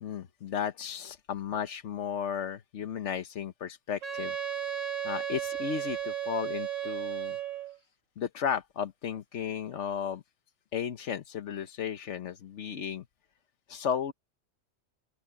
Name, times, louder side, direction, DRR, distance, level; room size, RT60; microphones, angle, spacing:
voice 1, 0.0-4.4 5.0-7.4 8.2-10.2 10.7-13.0 13.7-14.1, left 8 dB, 75° left, 1.3 m, -34 dB
Wind instrument woodwind instrument, 4.0-7.8, right 9 dB, 85° right, 1.9 m, -34 dB
open air
omnidirectional pair, 1.2 m